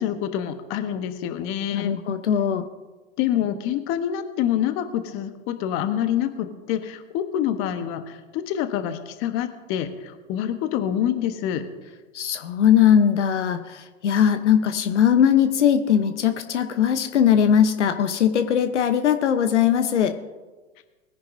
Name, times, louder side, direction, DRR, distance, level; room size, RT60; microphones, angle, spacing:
voice 1, 0.0-2.0 3.2-11.6, left 10 dB, 35° left, 9 dB, 1.1 m, -26 dB
voice 2, 1.7-2.6 12.1-20.2, left 9 dB, 70° left, 9 dB, 1.0 m, -20 dB
20.5 x 10.5 x 2.7 m, 1.3 s
hypercardioid pair, 110°, 37 cm